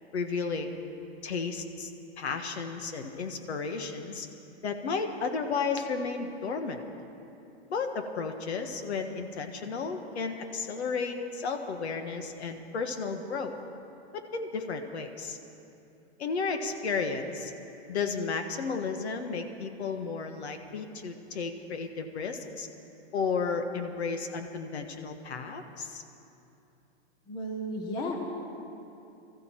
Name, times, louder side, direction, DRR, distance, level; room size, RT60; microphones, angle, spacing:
voice 1, 0.1-0.8 1.2-1.9 2.2-4.3 4.6-6.8 7.7-13.5 14.1-15.4 16.2-17.5 17.9-22.7 23.1-26.0, left 5 dB, 75° left, 6 dB, 1.5 m, -33 dB
voice 2, 27.3-28.2, equal, 15° left, 2 dB, 0.7 m, -33 dB
21.5 x 14.0 x 4.5 m, 2.8 s
hypercardioid pair, 170°, 33 cm